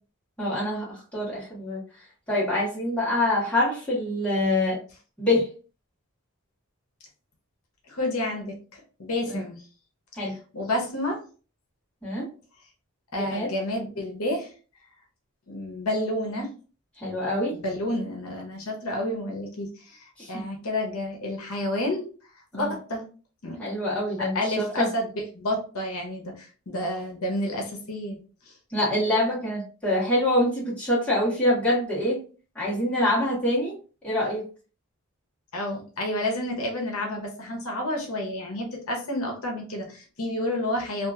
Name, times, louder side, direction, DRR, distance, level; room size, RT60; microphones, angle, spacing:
voice 1, 0.4-1.8 2.3-4.8 5.2-5.5 9.3-9.4 10.2-10.3 12.0-12.3 13.1-13.5 17.0-17.5 20.2-20.5 22.5-22.7 23.6-24.9 28.7-32.2 32.5-33.7 34.0-34.4, left 1 dB, 5° left, -9 dB, 1.3 m, -25 dB
voice 2, 7.9-9.6 10.5-11.2 13.1-14.5 15.5-16.5 17.6-22.0 22.5-23.0 23.4-23.6 24.2-25.1 25.3-28.2 35.5-41.1, left 1 dB, 75° left, 1 dB, 0.8 m, -30 dB
2.8 x 2.5 x 2.3 m, 0.37 s
head